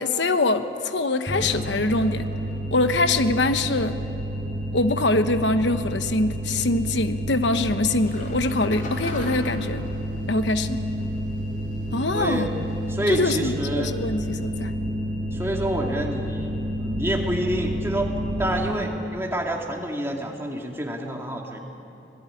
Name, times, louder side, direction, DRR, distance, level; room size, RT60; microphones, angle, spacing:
voice 1, 0.0-2.3 2.7-4.0 4.7-9.8 10.3-10.8 11.9-12.5 13.1-14.7, left 2 dB, 80° left, 9 dB, 1.1 m, -23 dB
sound 1, 1.3-18.7, equal, 45° right, 5.3 m, -30 dB
sound 2, 7.9-13.5, left 1 dB, 50° left, 4.8 m, -42 dB
voice 2, 12.1-12.5 12.9-13.9 15.3-18.1 18.4-21.6, right 1 dB, 15° right, 1 dB, 2.5 m, -28 dB
25.5 x 19.5 x 10.0 m, 2.9 s
head